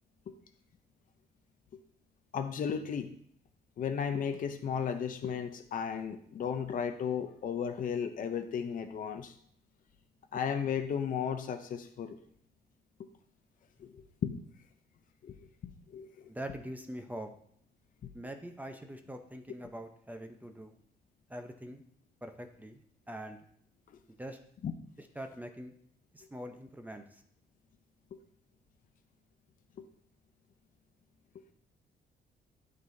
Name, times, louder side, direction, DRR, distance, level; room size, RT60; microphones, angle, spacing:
voice 1, 2.3-3.1 3.8-9.3 10.3-12.2 13.8-14.4 15.2-15.4 15.9-16.3 24.6-24.7 28.1-28.2 29.8-29.9, left 7 dB, 50° left, 8 dB, 0.6 m, -34 dB
voice 2, 16.3-17.3 18.1-20.8 21.3-21.8 22.2-23.4 24.2-24.4 25.0-25.7 26.1-27.2, right 1 dB, 10° right, 5 dB, 0.7 m, -43 dB
12.0 x 4.0 x 2.7 m, 0.63 s
cardioid pair, 110°, 18 cm